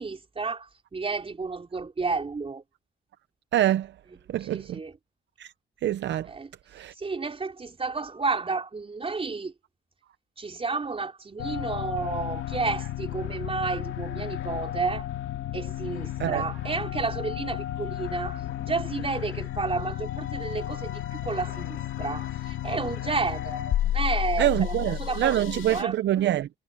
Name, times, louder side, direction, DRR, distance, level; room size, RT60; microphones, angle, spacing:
voice 1, 0.0-2.6 4.5-4.9 6.3-6.5 7.0-9.5 10.4-15.1 15.5-26.0, right 4 dB, 30° right, 4.4 m, -31 dB
voice 2, 3.5-3.9 4.3-4.8 5.4-5.5 5.8-6.3 6.7-6.9 16.2-16.4 24.4-26.5, right 12 dB, 65° right, 0.7 m, -25 dB
sound 1, 11.4-25.8, left 12 dB, 85° left, 2.1 m, -32 dB
cardioid pair, 90°, 20 cm